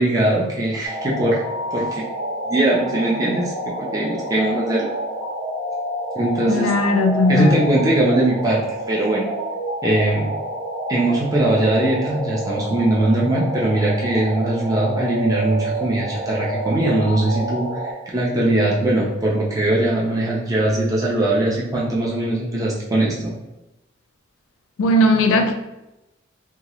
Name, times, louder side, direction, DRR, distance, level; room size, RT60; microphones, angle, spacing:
voice 1, 0.0-1.4 1.7-2.0 2.5-4.9 6.2-6.7 7.3-9.3 9.8-10.3 10.9-23.3, right 1 dB, 15° right, 0.4 m, -20 dB
sound 1, 0.8-17.9, right 1 dB, 35° right, 1.0 m, -29 dB
voice 2, 6.5-7.6 24.8-25.5, left 1 dB, 85° left, 0.4 m, -17 dB
2.8 x 2.3 x 3.0 m
head